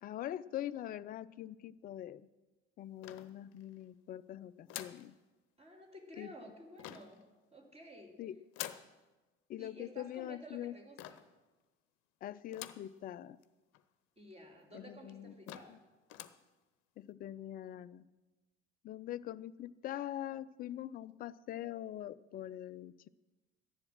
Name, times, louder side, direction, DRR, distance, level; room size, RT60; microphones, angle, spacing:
voice 1, 0.0-2.3 2.8-5.1 6.1-6.3 8.2-8.4 9.5-10.7 12.2-13.4 14.7-15.8 17.0-18.1 18.8-23.1, left 12 dB, 25° left, 16 dB, 0.4 m, -43 dB
sound 1, 3.0-3.8 4.7-5.1 6.8-7.2 8.5-8.9 11.0-11.4 12.5-12.9 13.4-13.5 13.7-13.8 14.6-14.7 15.1-15.2 15.5-15.8 16.1-16.4, left 13 dB, 50° left, 0.7 m, -47 dB
voice 2, 5.6-7.2 7.5-8.1 9.6-11.2 14.2-15.8, equal, 15° right, 2 dB, 2.5 m, -53 dB
14.0 x 10.5 x 6.1 m, 1.2 s
figure-of-eight pair, 60°, 36 cm